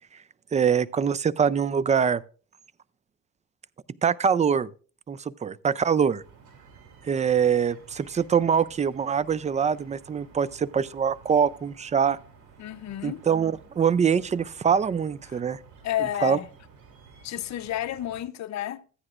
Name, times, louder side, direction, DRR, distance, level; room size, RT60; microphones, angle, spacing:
voice 1, 0.5-2.2 4.0-4.7 5.1-6.2 7.1-12.2 13.0-15.6 16.2-16.4, right 7 dB, 25° right, 0.4 m, -24 dB
sound 1, 6.2-18.2, right 5 dB, 85° right, 2.6 m, -52 dB
voice 2, 12.6-13.2 15.3-15.4 15.8-16.5 17.2-18.8, left 12 dB, 65° left, 0.7 m, -31 dB
14.0 x 9.7 x 2.4 m
cardioid pair, 90°, 30 cm